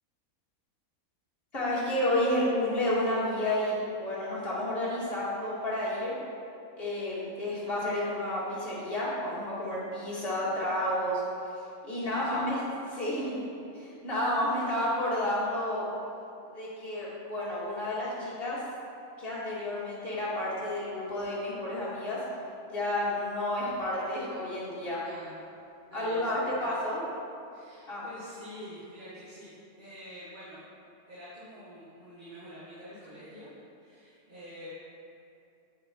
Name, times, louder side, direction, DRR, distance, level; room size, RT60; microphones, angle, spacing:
voice 1, 1.5-6.2 6.8-11.2 11.6-12.6 12.9-13.4 13.7-15.8 16.5-18.6 19.2-22.2 22.7-25.0 25.9-27.0 27.9-28.0, left 1 dB, 40° left, -8 dB, 2.6 m, -31 dB
voice 2, 12.0-12.4 25.0-25.4 25.9-26.4 26.7-26.8 27.5-30.7 31.1-33.5 33.8-34.7, equal, 30° right, -11 dB, 2.0 m, -47 dB
8.0 x 7.1 x 4.6 m, 2.6 s
omnidirectional pair, 1.6 m